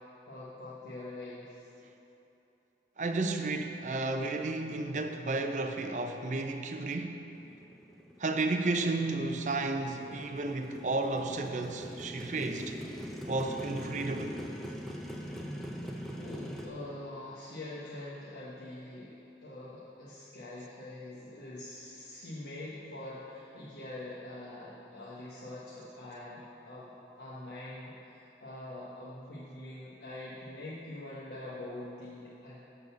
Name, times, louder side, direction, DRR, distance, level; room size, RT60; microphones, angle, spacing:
voice 1, 0.0-1.6 15.7-32.7, left 1 dB, 75° left, -8 dB, 1.2 m, -44 dB
voice 2, 3.0-7.2 8.2-12.8 13.3-14.4, right 2 dB, 45° right, 5 dB, 0.5 m, -32 dB
Motorcycle, 7.3-16.7, equal, ahead, 0.6 m, -42 dB
11.5 x 4.0 x 7.1 m, 2.9 s
head